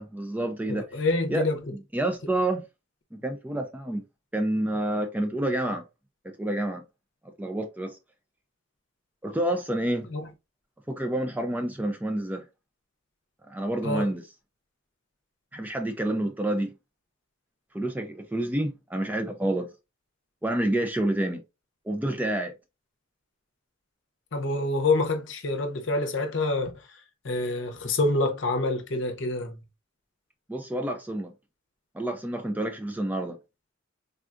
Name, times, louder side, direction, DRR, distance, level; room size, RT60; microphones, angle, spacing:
voice 1, 0.0-0.9 1.3-2.6 3.1-4.0 4.3-5.8 6.2-6.8 7.4-8.0 9.2-10.1 10.9-12.4 13.5-14.3 15.5-16.7 17.7-19.7 20.4-21.4 21.9-22.5 30.5-31.3 31.9-33.4, right 1 dB, 10° right, 0.3 m, -28 dB
voice 2, 0.7-1.6 10.1-10.2 13.8-14.1 24.3-26.7 27.2-29.6, left 2 dB, 60° left, 0.7 m, -26 dB
3.6 x 2.3 x 2.4 m
head